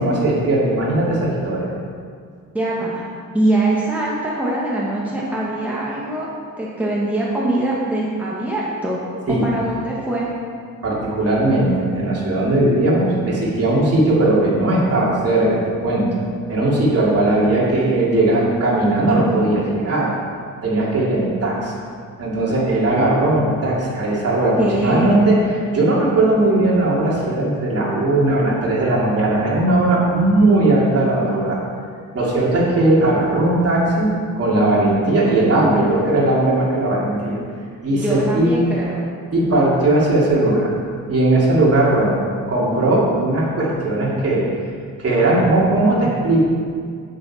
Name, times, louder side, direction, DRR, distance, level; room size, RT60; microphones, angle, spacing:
voice 1, 0.0-1.6 9.3-9.4 10.8-16.1 16.5-20.1 20.6-21.7 22.2-25.4 25.7-31.6 32.1-37.4 37.8-38.5 39.3-40.7 41.1-42.2 42.5-44.4 45.0-46.4, right 2 dB, 45° right, -6 dB, 3.0 m, -18 dB
voice 2, 2.5-3.0 3.3-6.3 6.6-9.0 9.3-10.3 24.6-25.1 38.0-39.0, right 1 dB, 5° right, -6 dB, 1.6 m, -22 dB
9.8 x 8.8 x 4.4 m, 2.1 s
cardioid pair, 120°, 34 cm